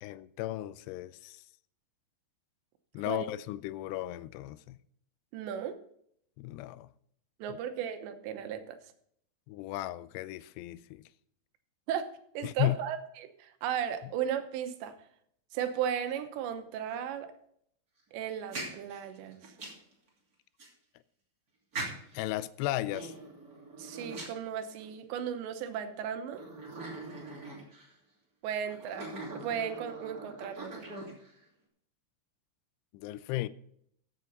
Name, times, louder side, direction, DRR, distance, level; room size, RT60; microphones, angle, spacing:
voice 1, 0.0-1.4 2.9-4.8 6.4-6.9 7.5-7.6 9.5-11.0 12.4-12.8 22.1-23.1 32.9-33.5, left 15 dB, 85° left, 2.5 m, -35 dB
voice 2, 5.3-5.8 7.4-8.8 11.9-12.1 12.3-15.0 15.5-17.3 18.1-19.4 23.8-26.5 28.4-30.9, right 8 dB, 85° right, 3.2 m, -35 dB
sound 1, 18.3-19.9 20.6-20.7 21.7-22.3 22.9-25.0 25.6-25.7 26.3-27.9 28.6-31.4, right 2 dB, 25° right, 2.5 m, -42 dB
15.0 x 7.6 x 4.0 m
omnidirectional pair, 4.9 m